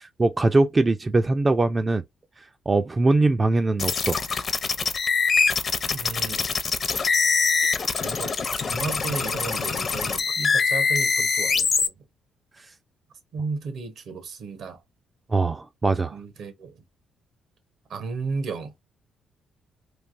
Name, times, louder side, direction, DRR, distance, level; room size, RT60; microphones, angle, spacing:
voice 1, 0.0-2.0 2.7-4.2 15.3-16.2, right 3 dB, 25° right, 0.3 m, -21 dB
sound 1, 3.8-11.9, left 5 dB, 45° left, 0.5 m, -24 dB
voice 2, 5.9-6.5 8.0-11.9 13.3-14.8 16.1-16.8 17.9-18.7, right 4 dB, 70° right, 0.9 m, -34 dB
3.2 x 2.7 x 2.5 m
cardioid pair, 90°, 0 cm